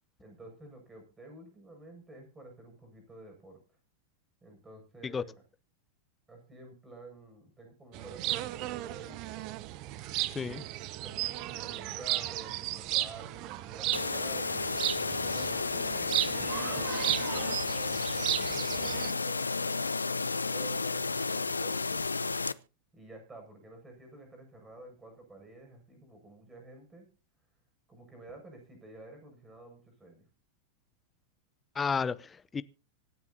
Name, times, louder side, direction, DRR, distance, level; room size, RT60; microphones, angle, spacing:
voice 1, 0.2-3.6 4.4-5.4 6.3-9.2 11.0-14.5 15.0-22.1 22.9-27.1 27.9-30.3, right 2 dB, 15° right, 7.1 m, -51 dB
sound 1, 7.9-19.1, right 16 dB, 40° right, 0.8 m, -35 dB
voice 2, 10.3-10.6 31.7-32.6, left 5 dB, 15° left, 0.7 m, -32 dB
sound 2, 13.9-22.5, left 4 dB, 80° left, 0.6 m, -32 dB
25.5 x 9.6 x 2.8 m
figure-of-eight pair, 90°, 0 cm